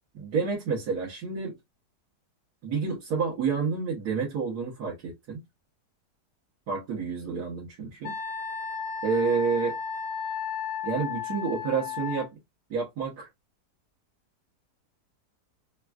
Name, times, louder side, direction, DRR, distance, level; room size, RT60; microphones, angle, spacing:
voice 1, 0.1-1.5 2.6-5.4 6.7-8.2 9.0-9.8 10.8-12.3 12.7-13.3, right 5 dB, 75° right, 1.6 m, -29 dB
Wind instrument woodwind instrument, 8.0-12.3, left 6 dB, 70° left, 1.2 m, -34 dB
3.8 x 2.2 x 2.3 m
omnidirectional pair, 1.7 m